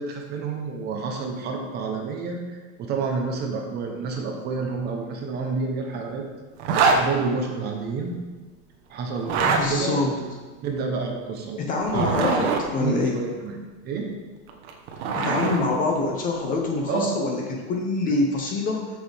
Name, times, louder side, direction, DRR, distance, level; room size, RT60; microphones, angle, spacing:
voice 1, 0.0-6.2 6.9-8.2 8.9-10.3 10.6-11.6 11.9-12.2 12.8-14.1 16.9-17.1, right 4 dB, 25° right, 2 dB, 0.9 m, -29 dB
Zipper (clothing), 6.6-7.0 9.2-9.6 11.8-12.6 14.5-15.6, right 4 dB, 55° right, 1.3 m, -23 dB
voice 2, 9.4-10.1 11.6-13.2 15.1-18.9, left 3 dB, 20° left, 1 dB, 0.8 m, -25 dB
13.5 x 6.6 x 3.5 m, 1.3 s
supercardioid pair, 175°, 39 cm